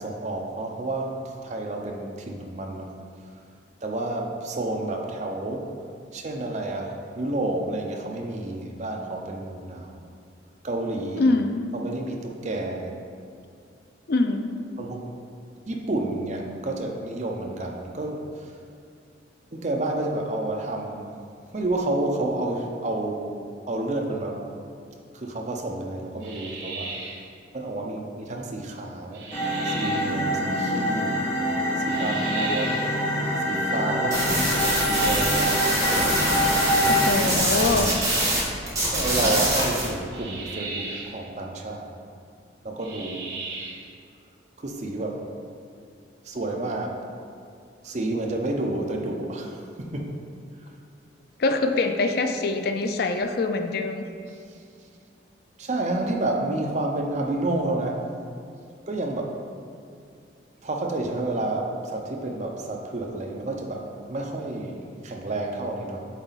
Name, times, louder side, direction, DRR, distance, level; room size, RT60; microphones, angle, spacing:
voice 1, 0.0-2.9 3.8-5.7 6.1-10.0 10.6-11.3 11.7-12.9 14.8-15.1 15.7-18.5 19.5-21.0 21.5-24.4 25.1-26.9 27.5-29.3 29.6-31.3 31.8-32.9 33.4-34.5 34.9-35.7 38.9-41.9 42.6-43.3 44.6-45.2 46.2-47.0 47.8-50.2 54.3-54.4 55.6-58.0 58.9-59.4 60.6-66.1, right 2 dB, 40° right, 1 dB, 0.6 m, -30 dB
voice 2, 11.2-11.5 14.1-14.4 36.9-38.0 51.4-54.1, left 3 dB, 55° left, 6 dB, 0.4 m, -24 dB
sound 1, 26.2-27.3 29.1-30.1 31.9-32.9 34.5-35.6 37.5-38.5 40.1-41.2 42.8-43.9, right 3 dB, 85° right, 1.2 m, -36 dB
sound 2, 29.3-37.1, equal, 30° left, 1.5 m, -25 dB
sound 3, 34.1-38.4 38.7-39.9, right 1 dB, 15° right, 1.5 m, -24 dB
8.1 x 4.0 x 4.0 m, 2.4 s
head